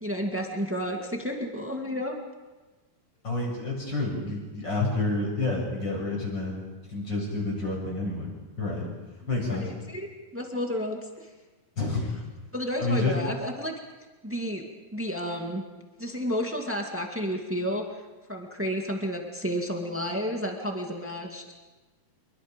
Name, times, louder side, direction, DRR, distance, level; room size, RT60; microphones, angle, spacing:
voice 1, 0.0-2.2 9.5-10.1 10.3-11.3 12.5-13.7 14.2-14.6 14.9-15.6 16.0-17.8 18.3-21.5, equal, 20° right, 1 dB, 0.3 m, -31 dB
voice 2, 3.2-6.6 6.9-8.3 8.6-8.8 9.3-9.8 11.8-12.0 12.8-13.1, left 2 dB, 25° left, -1 dB, 7.7 m, -29 dB
28.0 x 23.0 x 5.3 m, 1.3 s
omnidirectional pair, 4.5 m